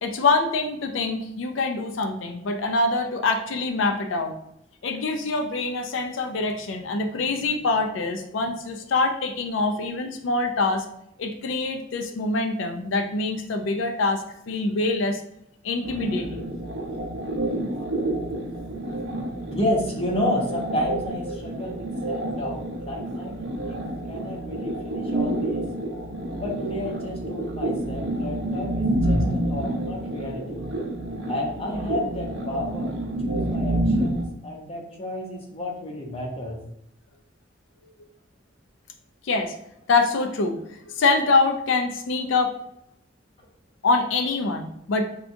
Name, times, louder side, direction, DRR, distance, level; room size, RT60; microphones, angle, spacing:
voice 1, 0.0-4.3 4.8-10.8 11.2-15.2 15.6-16.5 39.2-39.5 39.9-40.6 40.9-42.5 43.8-45.1, left 3 dB, 75° left, 6 dB, 0.4 m, -25 dB
sound 1, 15.8-34.2, right 1 dB, 70° right, 0.6 m, -28 dB
voice 2, 19.5-25.7 26.3-30.7 31.3-32.9 33.2-36.6, left 1 dB, 30° left, -1 dB, 0.7 m, -31 dB
5.8 x 2.3 x 2.6 m, 0.76 s
head